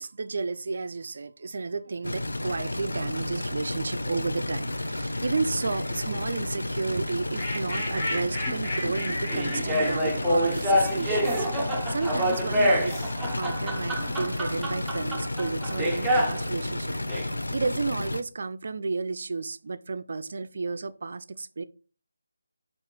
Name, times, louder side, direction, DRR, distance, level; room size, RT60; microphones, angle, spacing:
voice 1, 0.0-13.0 13.4-21.6, right 4 dB, 50° right, 0.4 m, -32 dB
sound 1, 2.0-18.2, left 1 dB, 75° left, 0.5 m, -32 dB
sound 2, 4.3-13.5 13.9-14.6, left 1 dB, 30° left, 1.6 m, -38 dB
sound 3, 7.6-7.7 8.5-16.5 16.9-17.3, equal, 5° right, 0.6 m, -27 dB
4.8 x 2.4 x 4.4 m
figure-of-eight pair, 155°, 0 cm